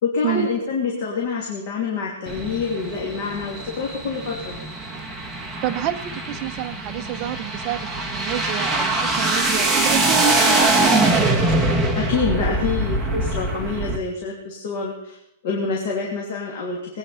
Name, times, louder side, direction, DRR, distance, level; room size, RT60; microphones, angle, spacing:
voice 1, 0.0-4.6 11.5-11.7 12.0-15.2 15.4-17.0, left 4 dB, 45° left, -2 dB, 2.9 m, -26 dB
sound 1, 2.3-14.0, right 2 dB, 5° right, 1.2 m, -23 dB
voice 2, 5.6-10.9, right 11 dB, 25° right, 8 dB, 0.7 m, -28 dB
21.0 x 9.5 x 5.7 m, 0.80 s
supercardioid pair, 175°, 0 cm